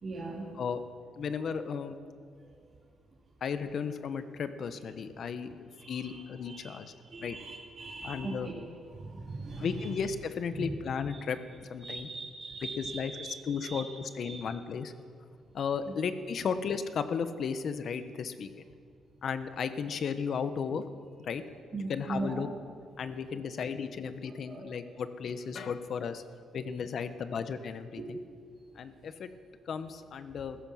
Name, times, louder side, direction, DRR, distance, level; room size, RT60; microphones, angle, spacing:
voice 1, 0.0-0.5 1.5-1.6 5.8-6.2 6.5-6.8 7.0-8.5 8.9-10.0 10.5-10.7 11.1-11.2 11.8-13.8 14.2-14.4 21.7-22.5 24.5-24.7 28.0-28.1, right 3 dB, 40° right, -5 dB, 2.5 m, -39 dB
voice 2, 1.2-2.0 3.4-6.9 7.2-7.4 8.0-8.5 9.6-11.4 11.7-12.1 12.8-14.9 15.5-18.5 19.2-20.8 21.2-21.4 21.7-22.5 23.0-26.2 26.5-28.2 28.8-29.3 29.7-30.6, left 6 dB, 60° left, 11 dB, 1.0 m, -35 dB
15.0 x 14.0 x 5.6 m, 2.1 s
cardioid pair, 90°, 0 cm